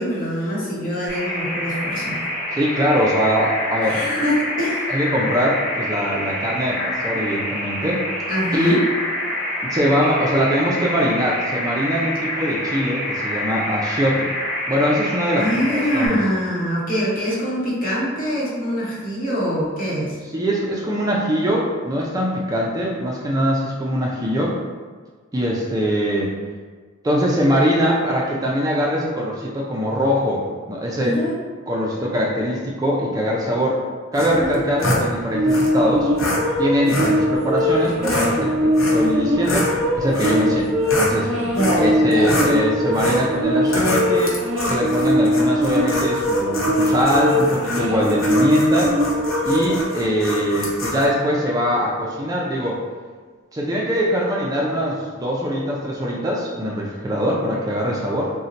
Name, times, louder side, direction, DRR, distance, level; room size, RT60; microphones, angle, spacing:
voice 1, 0.0-2.2 3.8-4.9 8.3-8.8 15.4-20.2 31.0-31.3 34.4-34.6 41.5-42.4, equal, 45° left, -6 dB, 0.9 m, -24 dB
sound 1, 1.1-16.1, left 1 dB, ahead, 1.1 m, -27 dB
voice 2, 2.5-4.0 4.9-8.1 8.5-8.8 9.7-14.3 14.7-16.2 20.3-24.6 25.3-26.3 27.0-31.2 31.7-33.8 34.1-36.1 36.6-39.7 39.9-40.7 41.0-41.3 41.8-44.4 44.6-48.9 49.4-52.8 53.5-58.3, equal, 20° right, -3 dB, 0.3 m, -22 dB
sound 2, 34.1-35.0 35.5-35.7 36.2-36.4 36.9-37.2 37.8-38.3 38.7-39.1 39.4-41.2 41.6-41.9 42.2-42.5 42.9-43.3 43.7-51.1, left 1 dB, 70° left, 0.7 m, -26 dB
sound 3, 35.3-49.8, equal, 65° right, 0.5 m, -21 dB
2.6 x 2.1 x 3.8 m, 1.5 s
head